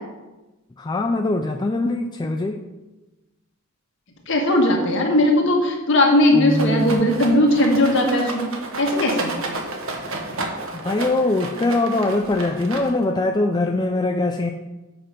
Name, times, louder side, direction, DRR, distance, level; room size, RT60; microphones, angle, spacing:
voice 1, 0.8-2.7 10.7-14.5, left 2 dB, 20° left, 4 dB, 0.3 m, -22 dB
voice 2, 4.3-8.5 8.8-9.3, left 1 dB, 55° left, 1 dB, 1.7 m, -18 dB
sound 1, 6.3-7.4, equal, 10° right, 0.8 m, -23 dB
Rattle, 6.5-13.2, right 2 dB, 65° right, 1.3 m, -31 dB
7.8 x 6.1 x 5.1 m, 1.1 s
head